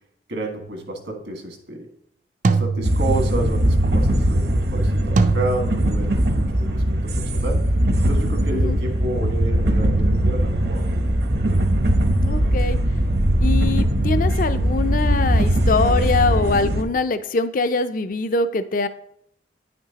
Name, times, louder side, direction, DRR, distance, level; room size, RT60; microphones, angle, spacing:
voice 1, 0.3-1.9 2.5-7.6 8.0-10.8, right 1 dB, 80° right, 2 dB, 1.6 m, -30 dB
sound 1, 0.6-0.9 2.4-3.6 5.2-6.3, right 4 dB, 45° right, 0.4 m, -24 dB
sound 2, 2.8-16.8, right 1 dB, 60° right, 0.8 m, -20 dB
voice 2, 12.2-12.8 13.4-18.9, left 3 dB, 50° left, 11 dB, 0.4 m, -23 dB
9.5 x 5.9 x 2.8 m, 0.70 s
head